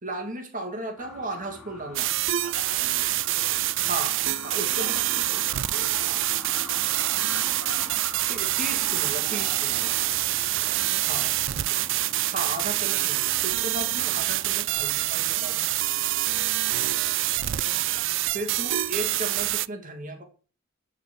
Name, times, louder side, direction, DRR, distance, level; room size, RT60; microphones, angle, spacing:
voice 1, 0.0-2.1 3.9-5.0 8.3-10.0 11.1-11.2 12.3-15.7 18.3-20.2, right 1 dB, 40° right, 2.6 m, -35 dB
sound 1, 1.0-19.6, left 1 dB, ahead, 4.0 m, -45 dB
sound 2, 2.0-19.7, right 15 dB, 65° right, 0.5 m, -26 dB
voice 2, 2.4-3.7 4.5-8.2 9.8-11.6 16.3-18.2, right 2 dB, 90° right, 3.1 m, -46 dB
12.5 x 6.2 x 7.8 m
head